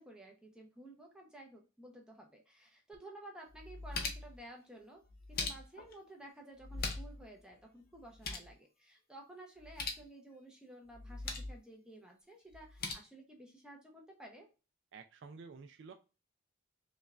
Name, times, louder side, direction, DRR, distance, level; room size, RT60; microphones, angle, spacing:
voice 1, 0.0-5.0 5.3-14.5, right 1 dB, 5° right, 0 dB, 0.7 m, -54 dB
sound 1, 2.9-3.0 3.5-4.4 5.1-5.9 6.6-7.2 7.5-7.6 7.9-8.5 9.6-10.1 10.9-11.6 12.5-12.9, left 3 dB, 45° left, 0.7 m, -41 dB
voice 2, 14.9-15.9, right 4 dB, 55° right, 5 dB, 0.3 m, -51 dB
5.2 x 2.3 x 2.4 m, 0.32 s
head